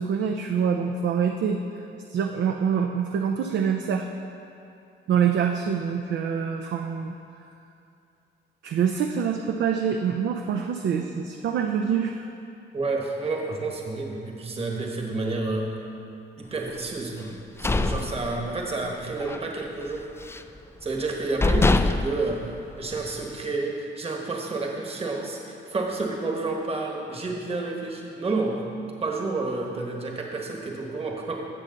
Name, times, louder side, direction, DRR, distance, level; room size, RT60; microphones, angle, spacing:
voice 1, 0.0-1.6 2.1-4.1 5.1-7.1 8.6-12.3, right 7 dB, 70° right, 4 dB, 0.6 m, -25 dB
voice 2, 12.7-15.8 16.4-20.1 20.8-28.7 29.0-31.4, right 3 dB, 30° right, 0 dB, 1.3 m, -30 dB
sound 1, 17.3-18.9 19.2-19.5 19.8-20.6 21.0-21.1 21.4-23.2, left 3 dB, 15° left, 0.3 m, -25 dB
15.5 x 6.3 x 3.9 m, 2.7 s
cardioid pair, 90°, 20 cm